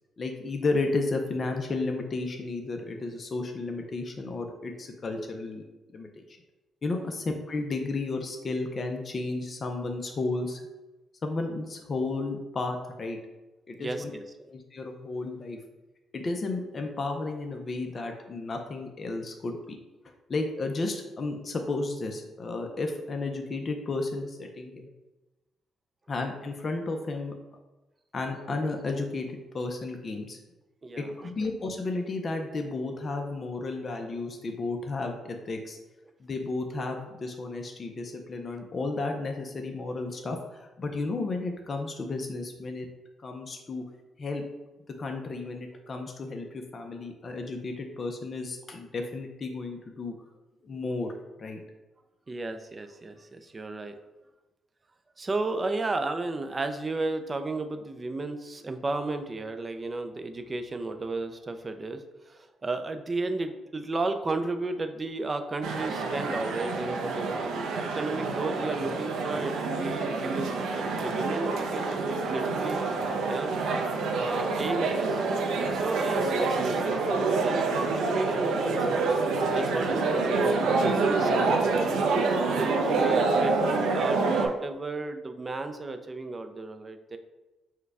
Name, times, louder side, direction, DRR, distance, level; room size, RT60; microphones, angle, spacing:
voice 1, 0.2-5.6 5.9-6.1 6.8-10.6 11.2-13.2 13.7-14.1 14.5-15.6 16.1-19.8 20.3-24.9 26.1-27.3 28.1-30.4 31.0-35.8 36.2-42.9 43.2-43.8 44.2-44.4 45.0-50.1 50.6-51.1 51.4-51.6, left 3 dB, 40° left, 3 dB, 0.5 m, -33 dB
voice 2, 13.8-14.5 30.8-31.3 52.3-53.9 55.2-72.8 73.3-73.8 74.1-75.2 75.7-79.2 79.5-82.0 82.5-87.2, right 3 dB, 30° right, 7 dB, 0.4 m, -34 dB
sound 1, 65.6-84.5, right 3 dB, 85° right, 0.5 m, -27 dB
4.6 x 2.2 x 4.7 m, 1.1 s
cardioid pair, 90°, 0 cm